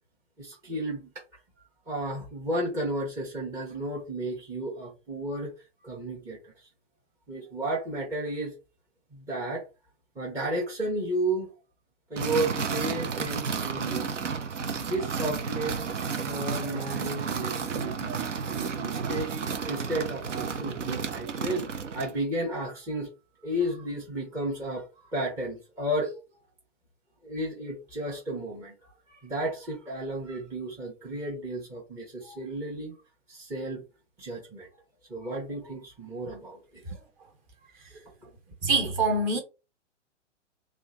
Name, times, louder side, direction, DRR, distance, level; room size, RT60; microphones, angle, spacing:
voice 1, 0.4-1.1 1.9-5.5 5.8-6.5 7.3-8.5 9.1-9.6 10.2-11.5 12.1-14.3 14.8-15.8 16.2-19.4 19.7-21.7 21.9-23.1 23.4-26.1 27.2-33.0 33.3-33.8 34.2-34.7 35.1-37.0, right 1 dB, 10° right, 0.6 m, -33 dB
sound 1, 12.2-22.2, right 5 dB, 75° right, 0.7 m, -32 dB
voice 2, 38.6-39.4, right 3 dB, 30° right, 0.9 m, -24 dB
2.9 x 2.4 x 3.7 m
figure-of-eight pair, 120°, 37 cm